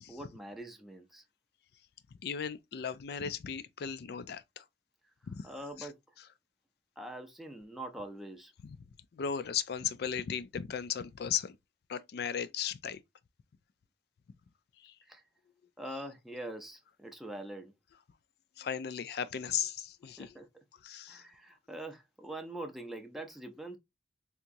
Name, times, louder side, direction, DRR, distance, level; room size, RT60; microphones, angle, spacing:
voice 1, 0.1-1.2 5.4-6.0 7.0-8.5 15.1-15.2 15.8-17.7 20.2-20.6 21.1-23.8, right 1 dB, ahead, 0.5 m, -44 dB
voice 2, 2.2-4.6 5.3-5.4 5.8-5.9 9.1-11.5 11.9-13.0 14.8-14.9 18.6-20.4 20.8-21.2, left 8 dB, 65° left, 0.4 m, -36 dB
3.5 x 2.9 x 2.5 m
head